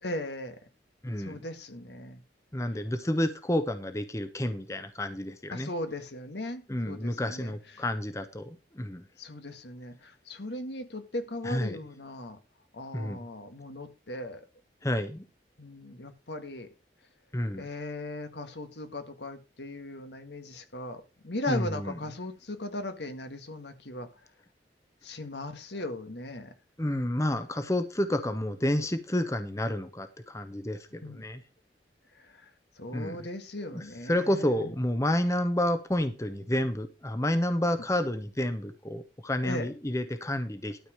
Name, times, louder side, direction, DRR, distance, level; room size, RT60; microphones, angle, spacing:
voice 1, 0.0-0.6 1.2-2.2 5.5-7.8 9.2-12.4 12.7-14.4 15.6-16.7 17.6-24.1 25.0-26.5 30.9-31.2 32.1-34.7 39.4-39.7, left 1 dB, 75° left, 1.8 m, -38 dB
voice 2, 1.0-1.4 2.5-5.7 6.7-9.0 11.4-11.8 12.9-13.2 14.8-15.2 17.3-17.7 21.5-22.0 26.8-31.4 32.9-33.3 33.6-40.8, left 1 dB, 15° left, 0.9 m, -30 dB
12.5 x 5.0 x 6.4 m
head